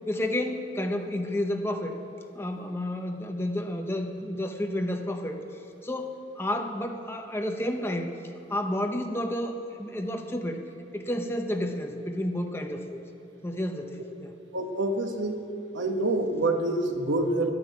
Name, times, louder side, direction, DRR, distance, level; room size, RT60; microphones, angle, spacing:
voice 1, 0.1-1.9 2.3-5.4 5.8-8.1 8.5-10.7 10.9-13.0 13.4-14.3, left 1 dB, 15° left, 4 dB, 0.8 m, -31 dB
voice 2, 14.5-15.4 15.7-17.5, right 2 dB, 80° right, 4 dB, 1.2 m, -26 dB
11.5 x 9.7 x 8.5 m, 2.6 s
head